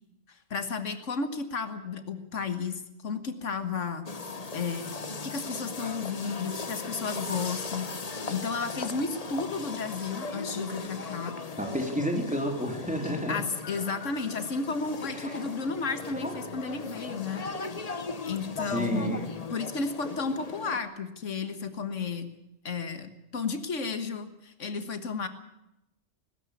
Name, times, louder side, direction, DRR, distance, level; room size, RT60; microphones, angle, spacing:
voice 1, 0.3-4.1 4.5-7.9 8.3-11.4 13.3-17.4 18.3-19.2 19.5-22.3 22.7-25.3, left 4 dB, 85° left, 10 dB, 1.8 m, -33 dB
sound 1, 4.1-20.8, left 4 dB, 35° left, 1.1 m, -38 dB
voice 2, 11.6-13.4 15.1-15.4 16.2-16.3 18.7-19.2, equal, 5° right, 3 dB, 3.5 m, -30 dB
19.5 x 16.5 x 8.4 m, 0.87 s
omnidirectional pair, 1.2 m